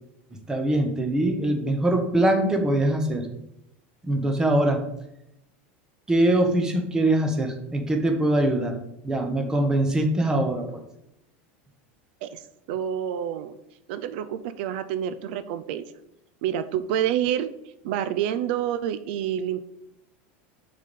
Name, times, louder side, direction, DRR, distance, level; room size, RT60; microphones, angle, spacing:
voice 1, 0.5-3.3 4.0-4.8 6.1-8.8 9.0-10.8, right 1 dB, 10° right, 5 dB, 0.9 m, -23 dB
voice 2, 12.2-13.6 13.9-15.9 16.4-17.5 17.8-19.6, right 10 dB, 60° right, 12 dB, 0.5 m, -28 dB
6.3 x 4.1 x 5.3 m, 0.82 s
supercardioid pair, 155°, 6 cm